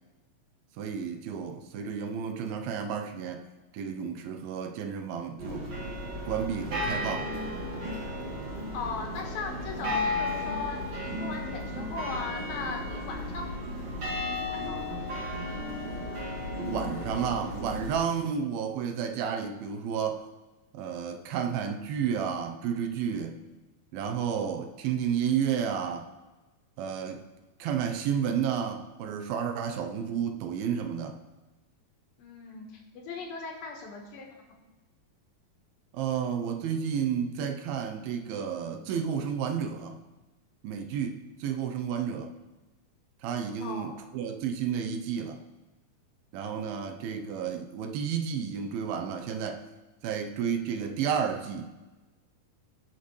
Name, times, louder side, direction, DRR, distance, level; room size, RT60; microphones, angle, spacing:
voice 1, 0.8-3.4 3.7-5.7 6.3-7.3 16.7-20.3 20.7-23.4 23.9-26.1 26.8-27.2 27.6-31.2 35.9-40.0 40.6-42.3 43.2-45.4 46.3-49.6 50.0-51.7, right 7 dB, 80° right, 5 dB, 2.6 m, -31 dB
sound 1, 5.4-17.9, left 1 dB, 45° right, 3.1 m, -34 dB
voice 2, 8.7-13.5 14.5-15.0 32.2-34.6 43.6-44.0, left 4 dB, 75° left, 1 dB, 3.2 m, -38 dB
19.0 x 6.7 x 3.2 m, 1.1 s
omnidirectional pair, 4.3 m